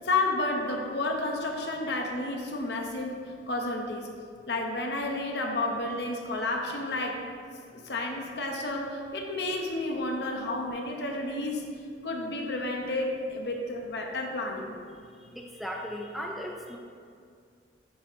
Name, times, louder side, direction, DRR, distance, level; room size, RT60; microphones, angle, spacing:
voice 1, 0.0-3.2 3.5-4.1 4.5-7.2 7.7-11.6 12.0-14.7, left 2 dB, 65° left, 1 dB, 0.8 m, -31 dB
voice 2, 15.3-16.8, equal, ahead, 0 dB, 0.4 m, -36 dB
7.4 x 2.9 x 6.0 m, 2.3 s
head